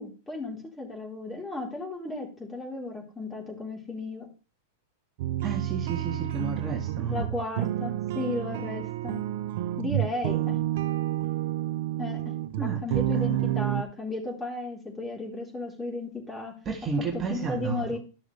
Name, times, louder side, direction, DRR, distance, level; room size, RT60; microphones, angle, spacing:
voice 1, 0.0-4.3 7.1-9.2 9.8-10.6 12.0-12.3 12.6-16.5 17.1-18.0, left 2 dB, 10° left, 0 dB, 3.8 m, -34 dB
sound 1, 5.2-13.8, right 14 dB, 60° right, 0.6 m, -29 dB
voice 2, 5.4-7.3 10.3-10.6 12.6-13.3 16.7-18.0, right 4 dB, 25° right, 2 dB, 1.8 m, -32 dB
12.5 x 6.3 x 3.3 m, 0.34 s
hypercardioid pair, 105°, 0 cm